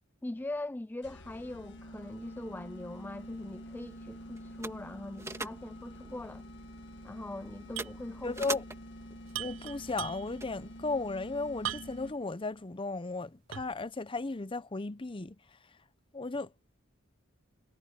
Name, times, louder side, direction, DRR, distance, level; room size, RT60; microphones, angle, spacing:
voice 1, 0.2-6.5 7.0-8.4, left 2 dB, 10° left, 0.3 m, -41 dB
sound 1, 1.0-12.4, equal, 60° left, 2.1 m, -48 dB
sound 2, 2.9-10.9, right 2 dB, 15° right, 2.2 m, -46 dB
sound 3, 7.8-8.0 8.3-8.4 9.3-10.5 11.6-12.2 12.7-12.8 13.5-13.9, right 11 dB, 70° right, 0.6 m, -39 dB
voice 2, 8.2-8.6 9.4-15.4 16.1-16.5, left 3 dB, 25° left, 0.7 m, -35 dB
head